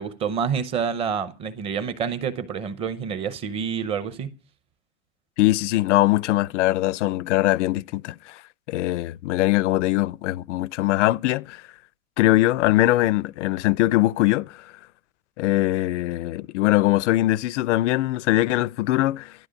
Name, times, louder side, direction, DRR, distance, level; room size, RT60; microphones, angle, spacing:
voice 1, 0.0-4.3, right 7 dB, 15° right, 0.6 m, -28 dB
voice 2, 5.4-8.4 8.7-11.6 12.2-14.7 15.4-19.3, left 17 dB, 85° left, 0.6 m, -22 dB
12.5 x 12.0 x 5.1 m
supercardioid pair, 175°, 35 cm